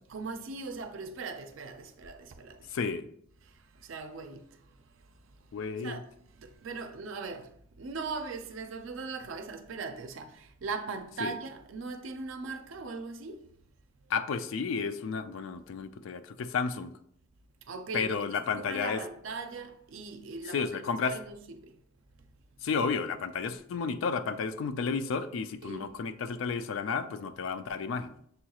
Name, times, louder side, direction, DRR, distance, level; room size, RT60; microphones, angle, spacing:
voice 1, 0.1-2.8 3.4-6.1 6.3-13.5 17.6-18.2 18.5-20.7 21.0-21.8 25.6-26.0, right 4 dB, 75° right, 0.5 m, -40 dB
voice 2, 2.7-3.0 5.5-6.0 11.2-11.3 14.1-16.9 17.9-19.0 20.5-21.2 22.6-28.1, left 5 dB, 80° left, 0.4 m, -32 dB
6.6 x 2.3 x 2.9 m
head